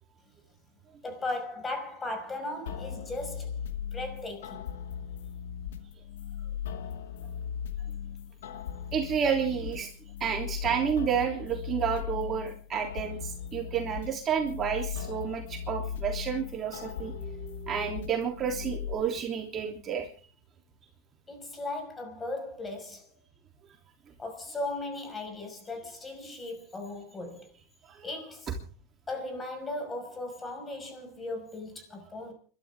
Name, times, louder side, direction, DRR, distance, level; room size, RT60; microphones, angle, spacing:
voice 1, 1.0-3.6 3.9-4.6 21.3-23.1 24.2-27.5 28.0-28.5 29.1-32.3, left 2 dB, 15° left, 5.8 m, -37 dB
sound 1, 2.7-18.9, left 8 dB, 90° left, 2.2 m, -38 dB
voice 2, 8.9-9.9 10.2-20.1 26.2-26.4 27.9-28.1, right 7 dB, 30° right, 3.2 m, -30 dB
29.0 x 13.0 x 3.7 m
supercardioid pair, 130°, 0 cm